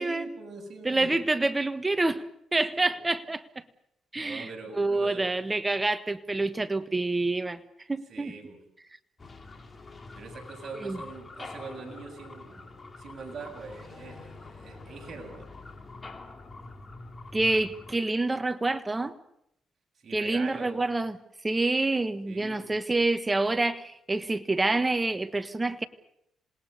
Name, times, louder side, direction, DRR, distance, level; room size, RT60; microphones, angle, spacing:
voice 1, 0.0-1.2 2.7-3.0 4.2-5.3 8.1-8.6 10.1-15.6 20.0-20.7 22.3-22.7, right 4 dB, 40° right, 7.9 m, -43 dB
voice 2, 0.8-2.2 2.5-3.4 4.1-4.5 4.7-7.6 7.9-8.4 10.8-11.0 17.3-19.1 20.1-21.2 21.4-25.8, right 2 dB, 15° right, 1.4 m, -27 dB
sound 1, 9.2-18.0, left 3 dB, 30° left, 3.1 m, -45 dB
27.0 x 20.5 x 6.9 m
cardioid pair, 90°, 0 cm